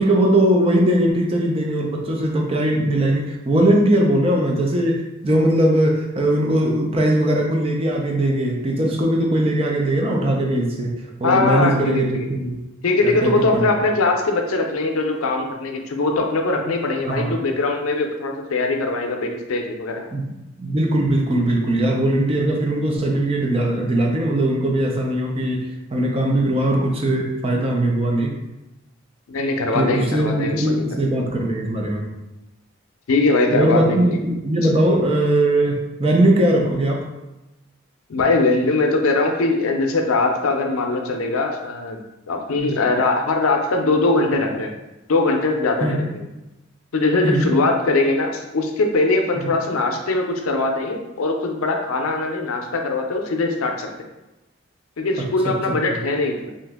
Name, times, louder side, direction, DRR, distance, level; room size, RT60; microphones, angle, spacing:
voice 1, 0.0-12.6 13.0-13.6 17.1-17.3 20.1-20.3 20.6-28.3 29.7-32.1 33.5-37.0 42.6-42.7 45.8-46.1 47.2-47.5 49.4-49.5 55.5-55.6, right 1 dB, 30° right, 0 dB, 0.5 m, -20 dB
voice 2, 11.2-12.3 12.8-20.0 29.3-30.7 33.1-34.2 38.1-42.0 42.3-44.7 45.1-46.3 46.9-53.9 55.0-56.5, left 3 dB, 90° left, 3 dB, 0.5 m, -21 dB
2.8 x 2.5 x 3.5 m, 0.99 s
head